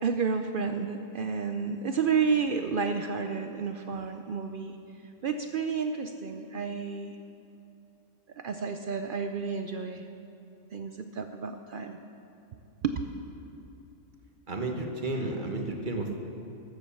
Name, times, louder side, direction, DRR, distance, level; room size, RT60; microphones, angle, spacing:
voice 1, 0.0-4.8 5.2-7.2 8.4-10.0 10.7-12.0 12.8-13.0, right 5 dB, 80° right, 7 dB, 0.4 m, -31 dB
voice 2, 14.5-16.2, right 2 dB, 35° right, 3 dB, 1.2 m, -32 dB
13.5 x 7.6 x 7.1 m, 2.8 s
omnidirectional pair, 1.5 m